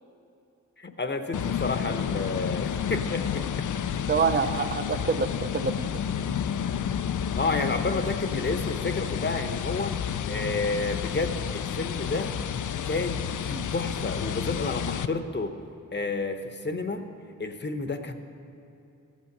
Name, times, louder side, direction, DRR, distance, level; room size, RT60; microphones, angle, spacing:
voice 1, 0.8-3.7 7.4-10.0 10.3-12.4 12.9-15.6 15.9-17.1 17.4-18.1, left 3 dB, 35° left, 7 dB, 0.8 m, -30 dB
sound 1, 1.3-15.1, left 8 dB, 70° left, 0.5 m, -30 dB
voice 2, 4.1-6.0 13.5-13.6, right 5 dB, 35° right, 10 dB, 0.6 m, -27 dB
14.5 x 8.4 x 6.6 m, 2.8 s
wide cardioid pair, 115°, 32 cm